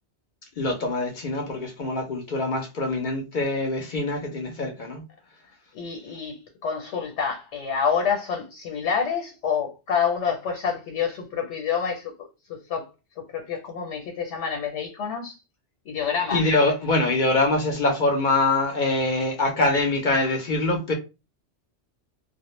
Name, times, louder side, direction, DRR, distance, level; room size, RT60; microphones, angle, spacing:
voice 1, 0.6-5.0 16.3-20.9, left 2 dB, 55° left, 0.6 m, -24 dB
voice 2, 5.7-12.9 13.2-15.4 15.8-16.4, left 6 dB, 85° left, 1.0 m, -28 dB
2.1 x 2.0 x 3.0 m
omnidirectional pair, 1.2 m